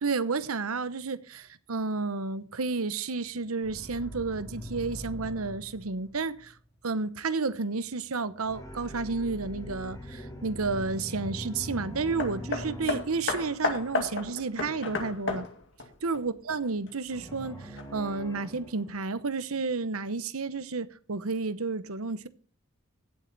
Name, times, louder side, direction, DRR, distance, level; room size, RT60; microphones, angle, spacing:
voice 1, 0.0-6.5 6.8-15.5 16.0-22.3, right 4 dB, 90° right, 0.9 m, -31 dB
sound 1, 3.6-6.7 8.4-14.1 17.1-19.5, left 1 dB, 15° left, 3.4 m, -42 dB
Hammer, 12.2-16.9 17.8-17.9, left 3 dB, 60° left, 2.2 m, -33 dB
16.5 x 7.6 x 4.1 m
head